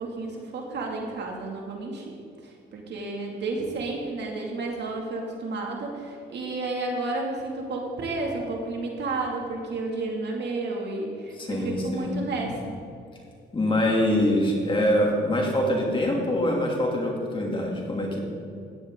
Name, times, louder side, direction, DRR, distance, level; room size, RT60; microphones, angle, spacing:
voice 1, 0.0-2.2 2.4-12.7, right 3 dB, 60° right, 0 dB, 2.5 m, -31 dB
voice 2, 11.4-12.2 13.5-18.2, left 1 dB, 25° left, -1 dB, 2.8 m, -24 dB
16.0 x 10.5 x 3.9 m, 2.5 s
cardioid pair, 90°, 20 cm